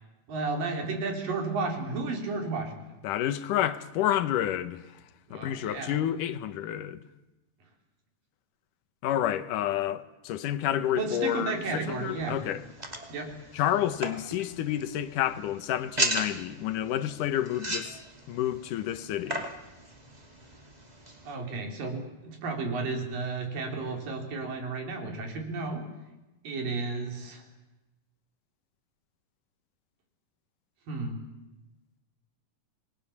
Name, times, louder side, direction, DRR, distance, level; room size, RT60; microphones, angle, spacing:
voice 1, 0.3-2.8 5.3-6.0 11.0-12.4 13.1-13.3 21.2-25.8 26.4-27.5 30.9-31.2, right 3 dB, 85° right, 5.3 m, -33 dB
voice 2, 3.0-4.8 5.3-7.0 9.0-12.6 13.5-18.0 18.3-19.4, left 11 dB, 75° left, 2.5 m, -29 dB
sound 1, 11.5-21.3, right 1 dB, 15° right, 2.3 m, -37 dB
29.0 x 21.5 x 7.2 m
omnidirectional pair, 3.8 m